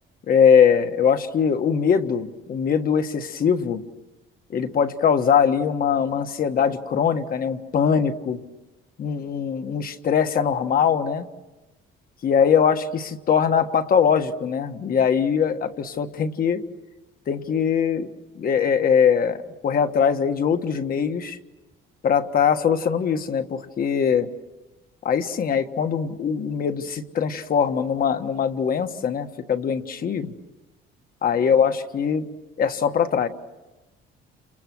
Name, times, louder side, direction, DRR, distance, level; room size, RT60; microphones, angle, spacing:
voice 1, 0.3-3.8 4.5-8.4 9.0-11.3 12.2-16.6 17.3-18.1 18.3-21.4 22.0-24.3 25.0-30.3 31.2-32.2 32.6-33.3, left 7 dB, 45° left, 7 dB, 1.6 m, -21 dB
29.5 x 28.5 x 6.3 m, 1.1 s
cardioid pair, 140°, 21 cm